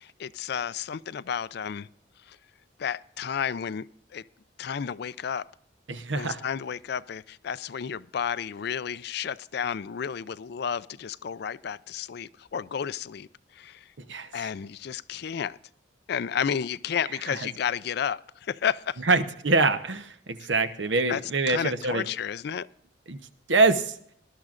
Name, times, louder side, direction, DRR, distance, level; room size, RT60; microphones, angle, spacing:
voice 1, 0.0-1.9 2.3-2.4 2.8-3.9 4.1-4.2 4.6-5.5 6.1-13.3 13.5-13.8 14.3-15.6 16.1-19.0 21.1-21.2 21.5-22.7, left 7 dB, 60° left, 0.4 m, -32 dB
voice 2, 5.9-6.4 14.0-14.3 17.3-17.5 19.1-22.0 23.1-23.2 23.5-24.0, right 3 dB, 75° right, 1.0 m, -24 dB
19.5 x 12.0 x 2.5 m
head